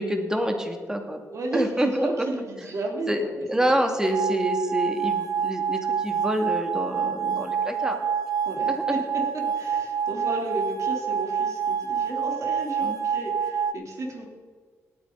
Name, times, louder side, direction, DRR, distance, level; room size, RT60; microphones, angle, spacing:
voice 1, 0.0-1.2 1.5-2.3 3.1-8.1 8.7-9.0 12.8-13.0, equal, 10° right, 4 dB, 2.3 m, -27 dB
voice 2, 1.3-3.3 3.6-3.7 8.4-14.2, right 2 dB, 55° right, 0 dB, 3.4 m, -33 dB
sound 1, 4.0-13.7, right 7 dB, 75° right, 0.6 m, -27 dB
18.5 x 9.3 x 4.0 m, 1.5 s
cardioid pair, 65°, 6 cm